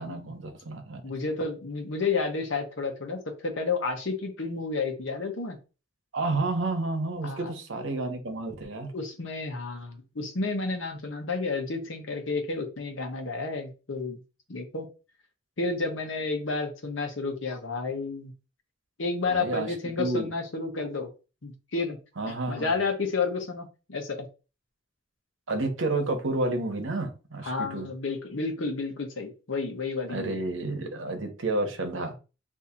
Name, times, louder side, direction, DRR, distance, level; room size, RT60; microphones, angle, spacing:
voice 1, 0.0-1.0 6.1-8.9 19.3-20.3 22.2-22.7 25.5-27.9 30.1-32.2, right 2 dB, 75° right, 5 dB, 0.9 m, -30 dB
voice 2, 1.0-5.6 7.2-7.5 8.9-14.2 14.5-14.9 15.6-18.3 19.0-21.1 21.4-22.0 22.5-24.3 27.4-30.4, left 4 dB, 75° left, 4 dB, 0.9 m, -31 dB
2.8 x 2.7 x 3.7 m, 0.32 s
head